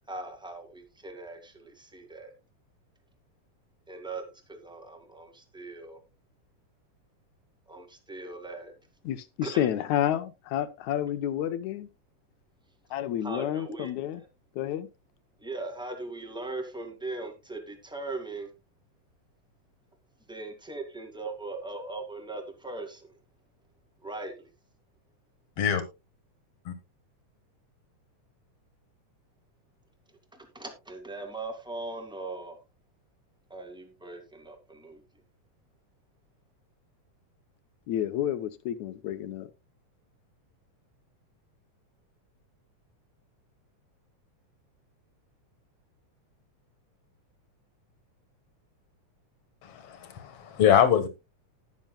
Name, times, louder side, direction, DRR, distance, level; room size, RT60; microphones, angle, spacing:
voice 1, 0.1-2.3 3.9-6.0 7.7-8.7 9.4-9.7 13.2-13.9 14.2-14.3 15.4-18.5 20.3-23.1 24.0-24.5 30.3-32.6 33.5-35.0, right 2 dB, ahead, 1.3 m, -39 dB
voice 2, 9.1-11.9 12.9-14.2 14.6-14.9 37.9-39.5, left 11 dB, 80° left, 2.2 m, -30 dB
voice 3, 49.6-51.1, left 9 dB, 55° left, 2.4 m, -23 dB
19.5 x 6.8 x 2.3 m
omnidirectional pair, 3.4 m